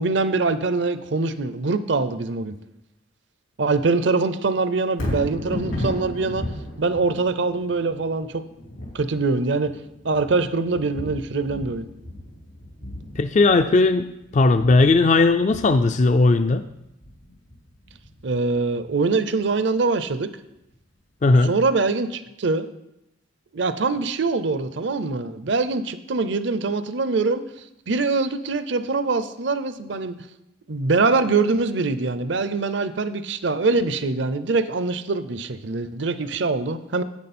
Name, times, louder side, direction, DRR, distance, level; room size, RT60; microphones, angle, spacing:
voice 1, 0.0-2.5 3.6-6.5 6.8-8.4 8.9-9.8 10.0-11.9 18.2-20.3 21.4-22.7 23.5-27.4 27.9-30.2 30.7-37.0, right 3 dB, 65° right, 12 dB, 0.7 m, -23 dB
Thunder, 4.9-19.1 19.6-19.7, left 1 dB, 90° left, 4.1 m, -35 dB
voice 2, 13.2-16.6 21.2-21.5, left 3 dB, 35° left, 9 dB, 0.4 m, -17 dB
10.5 x 8.6 x 4.3 m, 0.87 s
head